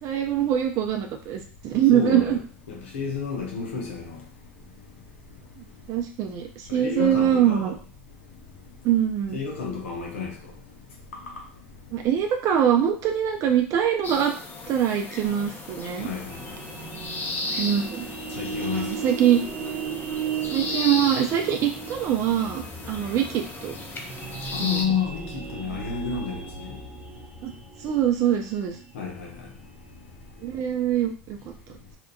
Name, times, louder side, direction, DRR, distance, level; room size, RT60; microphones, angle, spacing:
voice 1, 0.0-2.4 5.9-7.8 8.8-9.4 11.9-14.3 14.7-16.1 17.6-18.0 18.7-19.4 20.5-23.8 24.6-24.8 27.4-27.5 27.8-28.8 30.4-31.5, right 10 dB, 55° right, 0.4 m, -23 dB
voice 2, 1.9-2.4 2.7-4.2 6.7-7.7 9.3-10.3 16.0-16.4 18.4-18.9 24.5-25.2 25.5-26.8 28.9-29.3, left 6 dB, 85° left, 0.7 m, -30 dB
sound 1, 14.0-24.8, left 2 dB, 30° left, 0.6 m, -36 dB
sound 2, 16.3-30.4, right 6 dB, 25° right, 0.7 m, -36 dB
2.8 x 2.3 x 2.2 m
hypercardioid pair, 80°, 7 cm